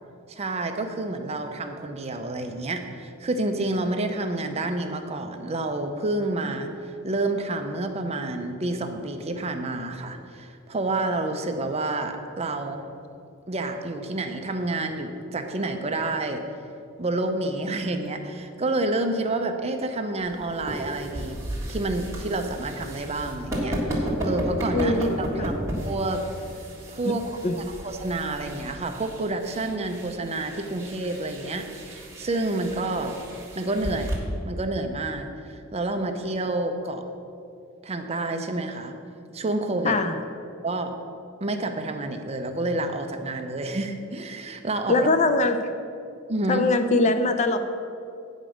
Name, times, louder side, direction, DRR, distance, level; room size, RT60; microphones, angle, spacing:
voice 1, 0.3-6.7 7.0-12.9 13.5-16.4 17.0-21.4 21.7-25.6 25.8-26.3 26.9-27.2 27.6-33.2 33.6-37.0 37.8-38.9 39.3-40.0 40.6-40.9 41.4-45.1 46.3-46.6, right 2 dB, 30° right, 6 dB, 0.6 m, -29 dB
sound 1, 20.2-34.2, equal, 15° right, 1.7 m, -33 dB
voice 2, 24.7-25.1 25.4-25.5 27.0-27.1 27.4-27.6 39.8-40.1 44.9-45.6 46.5-47.6, left 2 dB, 35° left, 8 dB, 0.4 m, -22 dB
8.8 x 5.2 x 6.3 m, 2.6 s
head